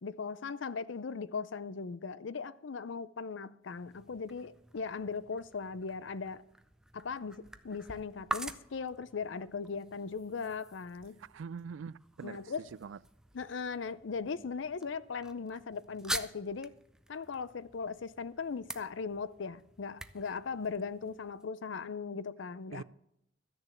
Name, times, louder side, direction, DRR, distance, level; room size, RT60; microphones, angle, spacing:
voice 1, 0.0-6.4 6.9-11.2 12.2-12.6 13.3-16.7 17.1-22.8, left 5 dB, 70° left, 0.5 m, -38 dB
sound 1, 3.6-21.5, right 1 dB, 5° right, 0.5 m, -46 dB
voice 2, 11.2-13.0 22.7-22.8, right 6 dB, 80° right, 0.4 m, -44 dB
13.0 x 6.7 x 8.3 m
head